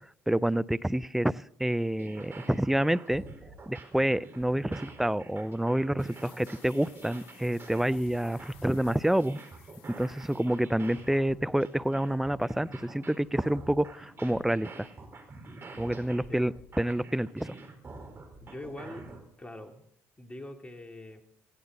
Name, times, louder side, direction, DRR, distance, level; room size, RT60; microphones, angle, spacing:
voice 1, 0.3-3.2 3.7-9.4 9.9-14.9 15.8-17.5, right 1 dB, 5° right, 19 dB, 0.6 m, -28 dB
sound 1, 1.9-19.2, right 3 dB, 35° right, 4.5 m, -47 dB
sound 2, 1.9-8.2, equal, 65° right, 4.8 m, -65 dB
sound 3, 6.0-11.3, left 10 dB, 80° left, 1.3 m, -58 dB
voice 2, 18.4-19.1 19.4-19.8 20.2-21.2, left 1 dB, 15° left, 4 dB, 3.1 m, -43 dB
19.0 x 16.0 x 4.1 m, 0.63 s
hypercardioid pair, 65°, 7 cm